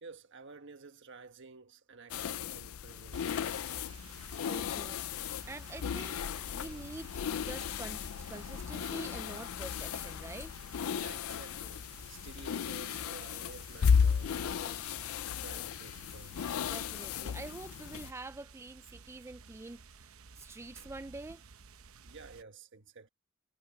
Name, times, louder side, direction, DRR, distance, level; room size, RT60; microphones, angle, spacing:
voice 1, 0.0-3.3 11.0-16.5 22.0-23.1, right 4 dB, 60° right, 1.5 m, -52 dB
sound 1, 2.1-18.1, left 7 dB, 80° left, 0.4 m, -35 dB
sound 2, 3.1-22.4, right 5 dB, 85° right, 0.9 m, -55 dB
voice 2, 4.4-5.0 5.5-6.2 6.6-10.5 16.7-21.4, right 2 dB, 10° right, 0.3 m, -46 dB
head